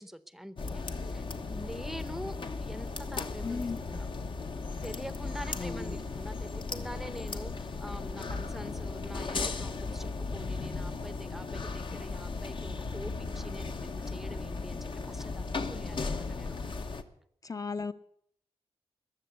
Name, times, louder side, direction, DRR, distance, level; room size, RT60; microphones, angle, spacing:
voice 1, 0.0-4.1 4.8-16.6, equal, 5° right, 14 dB, 0.7 m, -45 dB
sound 1, 0.6-17.0, left 4 dB, 45° left, 1.1 m, -36 dB
voice 2, 3.4-3.8 5.6-6.0 17.4-17.9, left 4 dB, 30° left, 11 dB, 0.8 m, -35 dB
20.5 x 7.2 x 8.1 m, 0.66 s
wide cardioid pair, 130°, 11 cm